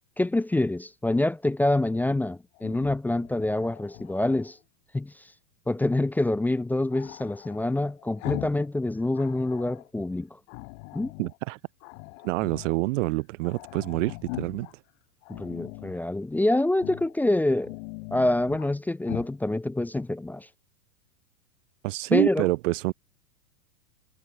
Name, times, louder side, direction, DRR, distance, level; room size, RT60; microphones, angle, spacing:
voice 1, 0.2-4.6 4.9-5.1 5.7-10.3 10.9-11.1 15.3-17.7 18.1-20.5 22.1-22.5, left 1 dB, 5° left, 0.5 m, -26 dB
Growling, 2.5-4.5 6.9-8.7 9.0-9.9 10.5-11.4 11.8-12.8 13.1-13.2 13.4-14.7 15.2-16.0 16.7-17.1 17.5-18.7 19.0-19.3, left 31 dB, 45° left, 1.1 m, -41 dB
voice 2, 11.2-11.6 12.2-14.7 21.8-22.9, right 21 dB, 55° right, 0.7 m, -27 dB
hypercardioid pair, 110°, 46 cm